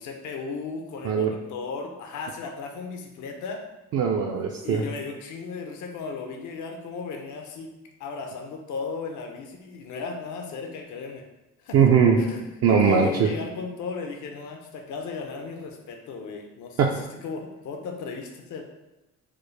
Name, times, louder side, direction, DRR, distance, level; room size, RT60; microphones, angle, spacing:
voice 1, 0.0-3.6 4.6-7.7 8.0-11.2 11.6-18.6, left 4 dB, 75° left, 2 dB, 0.6 m, -35 dB
voice 2, 3.9-4.8 11.7-12.2 12.6-13.3 16.8-17.0, right 6 dB, 55° right, 1 dB, 0.4 m, -20 dB
4.8 x 2.0 x 3.1 m, 0.99 s
cardioid pair, 90°, 30 cm